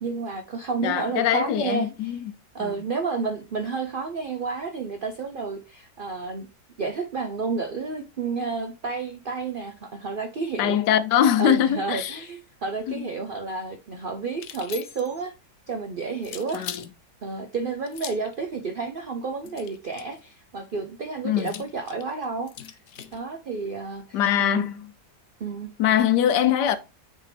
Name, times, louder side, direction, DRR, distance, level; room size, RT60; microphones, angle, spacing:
voice 1, 0.0-2.2 2.5-6.5 6.8-10.8 11.4-15.3 15.7-16.7 17.2-22.8 23.1-24.7 25.4-25.7, right 4 dB, 70° right, 0.5 m, -31 dB
voice 2, 0.8-2.3 2.6-2.7 10.6-12.2 12.9-13.1 16.5-16.8 21.2-21.5 24.1-24.9 25.8-26.8, left 10 dB, 90° left, 1.3 m, -22 dB
sound 1, 14.3-15.2 16.2-16.9 17.9-18.3 19.4-20.2 21.4-23.2, left 10 dB, 70° left, 0.7 m, -40 dB
8.4 x 3.7 x 3.3 m
omnidirectional pair, 1.8 m